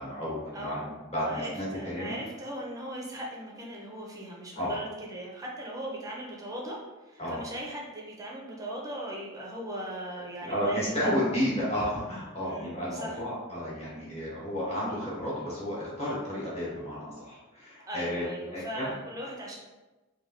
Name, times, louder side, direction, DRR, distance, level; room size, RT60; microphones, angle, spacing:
voice 1, 0.0-2.2 4.6-4.7 7.2-7.4 10.4-18.2 18.5-18.9, equal, 30° left, -8 dB, 1.2 m, -32 dB
voice 2, 0.5-0.9 1.2-11.1 12.4-13.2 17.9-19.6, right 1 dB, 15° right, -2 dB, 0.5 m, -39 dB
3.3 x 2.3 x 2.6 m, 1.1 s
head